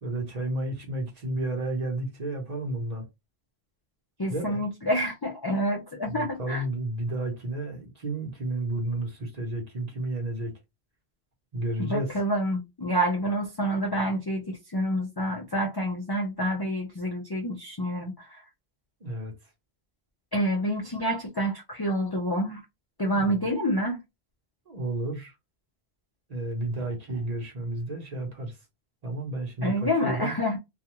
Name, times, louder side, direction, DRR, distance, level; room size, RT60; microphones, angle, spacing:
voice 1, 0.0-3.0 4.3-4.6 6.1-10.5 11.5-12.1 19.0-19.3 23.0-23.4 24.7-25.3 26.3-28.6 29.0-30.4, right 2 dB, 40° right, 0.9 m, -32 dB
voice 2, 4.2-6.6 11.8-18.4 20.3-22.6 23.0-24.0 29.6-30.6, equal, 40° left, 0.3 m, -28 dB
2.4 x 2.3 x 2.9 m
omnidirectional pair, 1.2 m